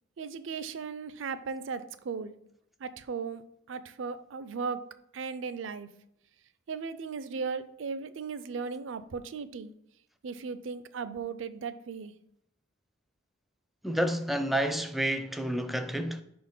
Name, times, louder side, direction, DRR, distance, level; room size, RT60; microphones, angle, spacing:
voice 1, 0.2-2.3 2.8-3.4 3.7-4.8 5.1-5.9 6.7-9.7 10.2-12.1, right 5 dB, 75° right, 0.5 m, -36 dB
voice 2, 13.8-16.2, equal, ahead, 0.4 m, -29 dB
5.5 x 4.4 x 5.3 m
head